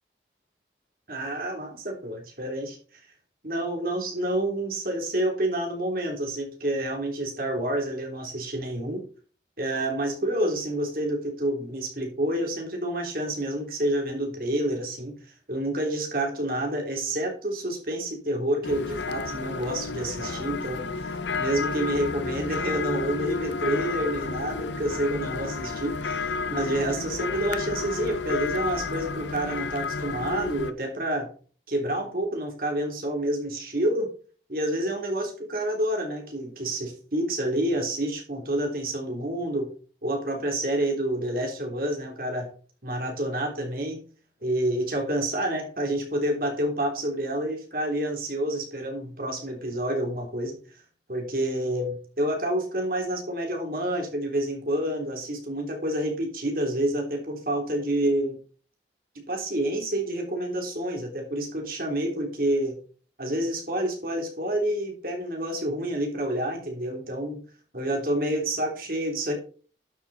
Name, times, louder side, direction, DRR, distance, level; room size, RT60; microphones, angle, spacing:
voice 1, 1.1-2.8 3.4-9.0 9.6-15.2 15.5-31.3 31.7-34.1 34.5-39.7 40.0-42.5 42.8-44.0 44.4-50.6 51.1-58.4 59.3-62.8 63.2-67.4 67.7-69.3, right 1 dB, 50° right, 1 dB, 3.5 m, -28 dB
sound 1, 18.6-30.7, left 4 dB, 85° left, 0.9 m, -31 dB
12.0 x 6.8 x 4.2 m, 0.41 s
head